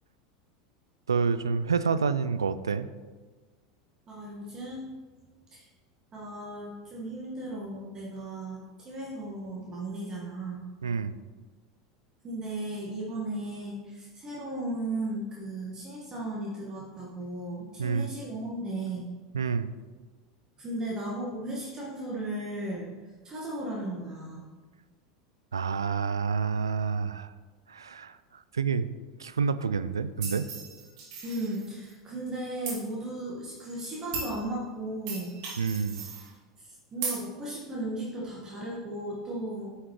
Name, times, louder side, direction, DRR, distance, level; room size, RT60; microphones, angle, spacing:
voice 1, 1.1-2.9 10.8-11.2 17.8-18.1 19.3-19.7 25.5-27.3 27.7-28.2 28.5-28.9 29.2-30.5 35.6-36.0, right 5 dB, 80° right, 13 dB, 0.4 m, -28 dB
voice 2, 4.1-4.9 5.5-5.7 6.1-10.7 12.2-19.1 20.6-24.5 31.2-35.3 36.6-39.7, right 1 dB, 30° right, -4 dB, 1.7 m, -36 dB
sound 1, 30.2-31.9 32.7-32.8 33.6-33.7 34.1-34.4 35.1-36.3 37.0-37.2, right 4 dB, 60° right, 2.6 m, -37 dB
9.8 x 5.6 x 3.2 m, 1.4 s
figure-of-eight pair, 80°, 2 cm